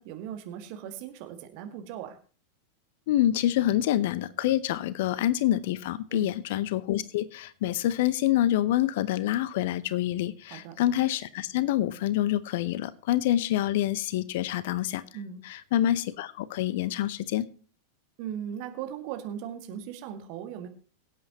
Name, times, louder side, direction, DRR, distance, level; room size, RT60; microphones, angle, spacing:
voice 1, 0.0-2.2 6.1-6.3 10.5-10.7 15.1-15.5 18.2-20.7, right 9 dB, 45° right, 6 dB, 2.0 m, -38 dB
voice 2, 3.1-15.0 15.4-17.4, left 13 dB, 50° left, 18 dB, 0.7 m, -26 dB
23.0 x 8.4 x 3.0 m, 0.39 s
figure-of-eight pair, 90°, 0 cm